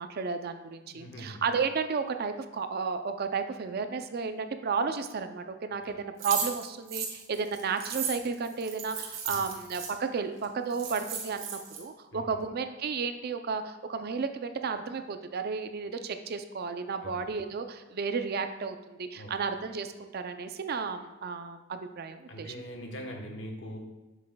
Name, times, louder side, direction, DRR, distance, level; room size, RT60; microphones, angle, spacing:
voice 1, 0.0-22.5, right 5 dB, 50° right, 8 dB, 0.4 m, -33 dB
voice 2, 0.9-1.4 9.3-9.4 12.1-12.2 17.0-17.1 19.2-19.3 22.3-23.8, equal, 65° left, 2 dB, 1.1 m, -41 dB
sound 1, 6.2-9.9 10.4-10.5 10.7-11.8, right 6 dB, 80° right, 1.2 m, -35 dB
7.4 x 6.2 x 2.2 m, 1.0 s
head